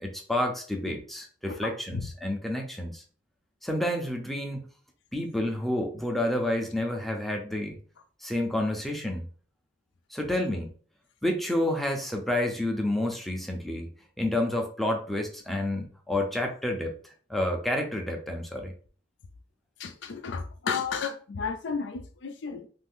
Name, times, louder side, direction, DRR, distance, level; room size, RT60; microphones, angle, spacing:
voice 1, 0.0-3.0 3.6-4.6 5.1-7.8 8.2-9.3 10.1-10.7 11.2-13.9 14.2-18.7, left 1 dB, ahead, 2 dB, 0.5 m, -29 dB
voice 2, 1.5-2.0 19.8-22.7, left 5 dB, 70° left, 6 dB, 0.4 m, -33 dB
2.6 x 2.5 x 3.5 m, 0.43 s
head